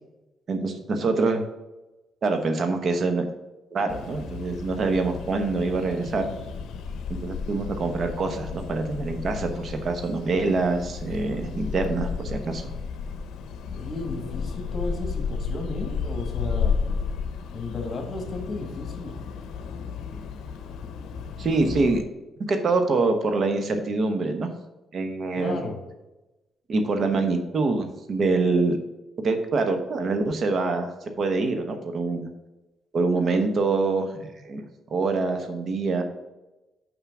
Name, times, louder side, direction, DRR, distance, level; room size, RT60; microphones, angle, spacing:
voice 1, 0.5-1.4 2.2-3.3 3.7-6.2 7.2-12.6 21.4-22.0 22.5-24.5 24.9-25.6 26.7-28.8 29.2-32.3 32.9-34.6 34.9-36.0, right 3 dB, 50° right, 6 dB, 1.0 m, -25 dB
sound 1, 3.9-22.0, left 5 dB, 80° left, 0.7 m, -33 dB
voice 2, 13.7-16.8 17.5-19.1 25.4-25.8, left 2 dB, 40° left, 3 dB, 1.9 m, -34 dB
5.8 x 5.5 x 6.0 m, 1.0 s
cardioid pair, 90°, 0 cm